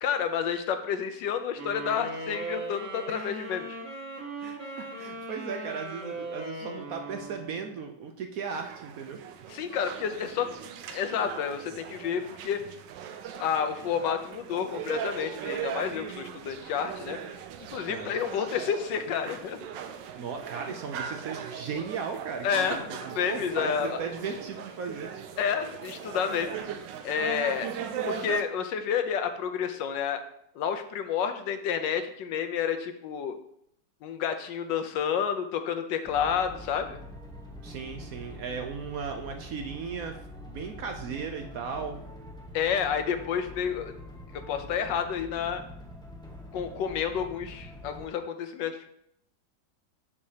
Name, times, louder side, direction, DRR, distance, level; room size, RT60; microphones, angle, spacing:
voice 1, 0.0-3.8 9.5-10.5 10.9-12.6 13.4-17.2 17.7-19.6 22.4-24.0 25.4-26.6 27.0-27.7 28.0-30.2 30.5-33.4 34.0-37.0 42.5-43.9 44.5-45.6 46.5-48.9, left 7 dB, 80° left, 8 dB, 1.4 m, -30 dB
sound 1, 1.6-8.0, right 2 dB, 50° right, 1.9 m, -39 dB
voice 2, 4.4-9.2 17.8-18.1 20.2-23.0 23.2-25.1 37.6-42.0, right 5 dB, 65° right, 5 dB, 0.9 m, -36 dB
sound 2, 8.5-28.4, right 8 dB, 85° right, 1.3 m, -39 dB
sound 3, 36.0-48.1, left 1 dB, 5° left, 0.4 m, -45 dB
7.3 x 6.5 x 2.8 m, 0.71 s
omnidirectional pair, 1.9 m